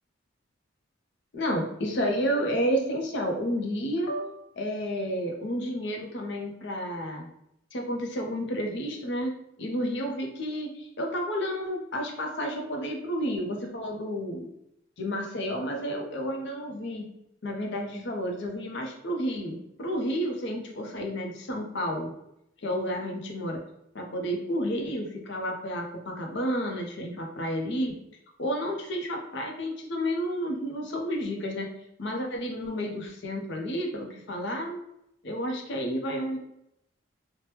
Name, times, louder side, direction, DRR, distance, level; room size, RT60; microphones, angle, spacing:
voice 1, 1.3-7.3 7.7-9.3 9.6-14.5 15.0-17.0 17.4-22.1 22.6-23.6 23.9-27.9 28.4-31.7 32.0-34.8 35.2-36.4, equal, 60° left, 1 dB, 0.6 m, -31 dB
2.9 x 2.1 x 3.2 m, 0.79 s
head